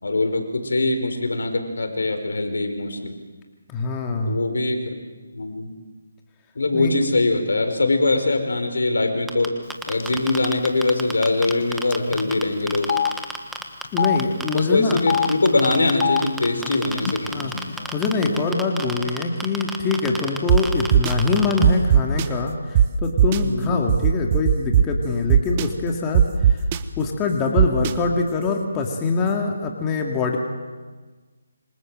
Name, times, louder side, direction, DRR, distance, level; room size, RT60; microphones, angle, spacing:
voice 1, 0.0-3.1 4.3-5.0 5.3-5.7 6.5-9.5 9.9-12.9 14.0-14.1 14.5-17.5 18.2-18.3 23.4-23.8, left 2 dB, 80° left, 5 dB, 4.9 m, -22 dB
voice 2, 3.7-4.4 6.7-6.9 12.1-12.3 13.9-15.0 16.6-16.9 17.3-17.5 17.9-26.6 27.0-30.4, left 4 dB, 15° left, 1 dB, 2.3 m, -24 dB
sound 1, 9.3-12.4 12.7-14.6 14.9-21.6, right 2 dB, 5° right, 1.4 m, -30 dB
Telephone, 10.0-10.2 10.4-10.6 11.5-11.6 11.9-12.0 12.8-13.1 13.8-14.2 14.9-15.3 15.9-16.2 17.0-17.1 17.4-18.1, left 8 dB, 40° left, 1.0 m, -23 dB
sound 2, 20.5-20.6 20.9-21.1 21.6-22.2 22.7-22.8 23.2-23.4 23.9-24.8 25.3-25.6 26.1-26.8 27.6-27.9, right 9 dB, 25° right, 1.1 m, -15 dB
27.0 x 25.5 x 7.6 m, 1.4 s
hypercardioid pair, 165°, 0 cm